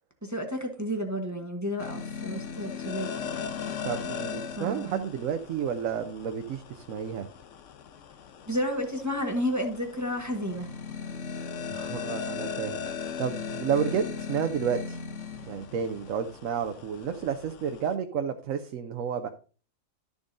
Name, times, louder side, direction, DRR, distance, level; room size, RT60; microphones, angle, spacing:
voice 1, 0.2-3.3 4.6-5.0 8.5-10.7, equal, 15° right, 1.1 m, -31 dB
sound 1, 1.8-17.9, left 6 dB, 65° left, 1.0 m, -38 dB
voice 2, 3.8-7.3 11.7-15.0 15.4-19.3, right 7 dB, 70° right, 1.1 m, -31 dB
12.5 x 7.1 x 2.6 m
omnidirectional pair, 1.5 m